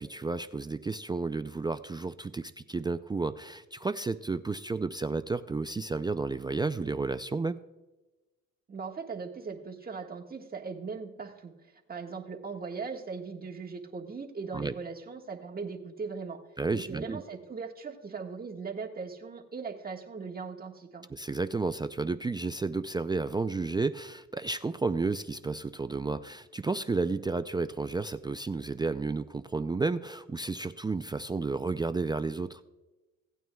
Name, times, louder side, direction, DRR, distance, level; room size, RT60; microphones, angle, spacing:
voice 1, 0.0-7.6 14.5-14.7 16.6-17.2 21.1-32.6, right 3 dB, 15° right, 10 dB, 0.3 m, -32 dB
voice 2, 8.7-11.5 11.9-16.4 16.7-21.1, right 5 dB, 30° right, 2 dB, 1.6 m, -39 dB
17.0 x 9.2 x 2.3 m, 1.1 s
cardioid pair, 90°, 30 cm